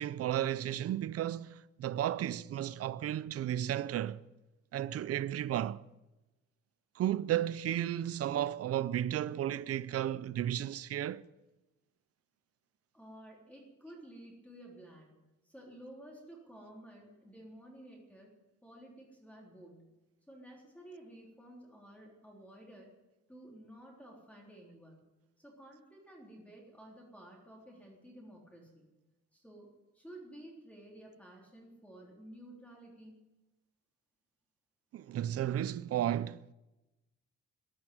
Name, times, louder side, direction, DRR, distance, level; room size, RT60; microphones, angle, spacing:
voice 1, 0.0-4.2 4.7-5.8 7.0-11.3 34.9-36.4, right 11 dB, 55° right, 0.6 m, -33 dB
voice 2, 12.9-15.2 15.4-18.3 18.6-19.9 20.3-22.9 23.3-25.0 25.4-28.9 29.3-33.3, right 1 dB, 5° left, 3.5 m, -53 dB
14.0 x 11.0 x 9.3 m
cardioid pair, 145°, 29 cm